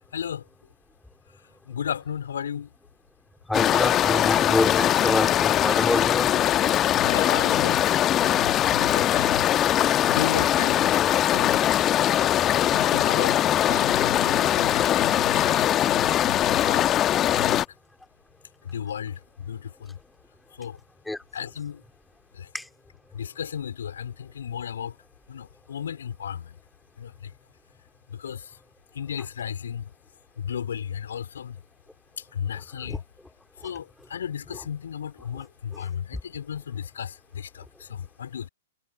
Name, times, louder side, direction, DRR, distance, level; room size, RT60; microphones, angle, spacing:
voice 1, 0.1-0.5 1.7-2.7 6.9-7.9 8.2-9.8 10.1-11.0 11.3-11.6 12.7-13.4 13.7-16.9 17.3-17.6 18.6-20.0 20.6-20.8 21.3-21.8 22.3-22.5 23.1-25.0 25.3-26.6 27.0-27.3 28.1-28.6 28.9-29.9 30.4-31.6 32.2-33.0 33.6-38.5, left 8 dB, 60° left, 4.4 m, -34 dB
sound 1, 3.5-17.6, left 12 dB, 25° left, 1.2 m, -21 dB
voice 2, 3.5-6.3 21.1-21.2 22.5-22.6 32.9-33.0, left 2 dB, 5° left, 3.2 m, -26 dB
figure-of-eight pair, 110°, 0 cm